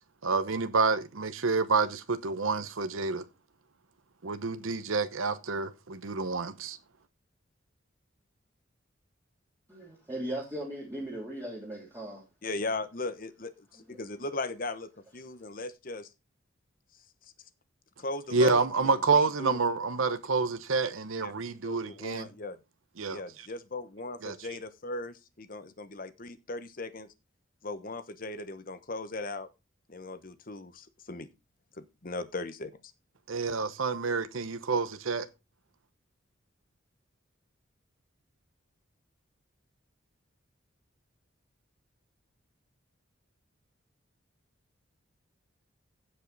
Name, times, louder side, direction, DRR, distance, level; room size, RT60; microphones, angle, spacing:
voice 1, 0.2-3.2 4.2-6.8 18.3-22.3 23.0-23.2 24.2-24.3 33.3-35.3, right 4 dB, 90° right, 0.9 m, -28 dB
voice 2, 9.7-12.2 13.9-14.0, right 1 dB, 15° right, 2.9 m, -38 dB
voice 3, 12.4-16.1 18.0-19.6 21.2-21.3 21.6-22.6 23.1-27.1 27.6-29.5 29.9-31.3 31.8-32.7, left 2 dB, 45° left, 1.0 m, -38 dB
15.5 x 5.4 x 4.0 m
head